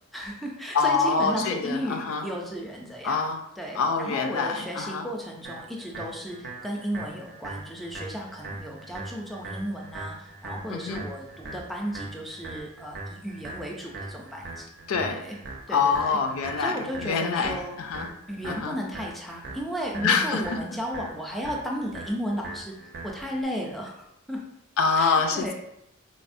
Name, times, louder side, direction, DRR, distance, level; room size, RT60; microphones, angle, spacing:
voice 1, 0.1-3.2 3.6-14.7 15.1-15.4 15.7-16.2 16.6-17.8 18.3-22.7 23.0-24.4 25.0-25.5, equal, ahead, -1 dB, 0.4 m, -34 dB
voice 2, 0.7-2.2 3.0-3.4 3.7-5.1 10.7-11.0 14.9-15.2 15.7-18.1 18.4-18.8 20.0-20.6 24.8-25.5, left 5 dB, 75° left, 5 dB, 0.4 m, -25 dB
sound 1, 5.4-23.4, right 2 dB, 55° right, 0.6 m, -41 dB
4.1 x 2.0 x 2.5 m, 0.80 s
head